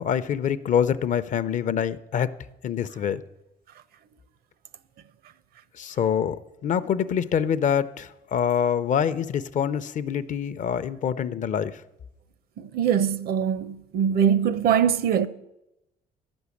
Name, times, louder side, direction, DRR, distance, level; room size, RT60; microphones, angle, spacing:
voice 1, 0.0-2.3 2.6-3.2 5.8-6.4 6.6-11.8, left 8 dB, 50° left, 0.6 m, -25 dB
voice 2, 12.6-15.3, right 8 dB, 65° right, 0.6 m, -22 dB
11.5 x 6.2 x 8.3 m
cardioid pair, 110°, 17 cm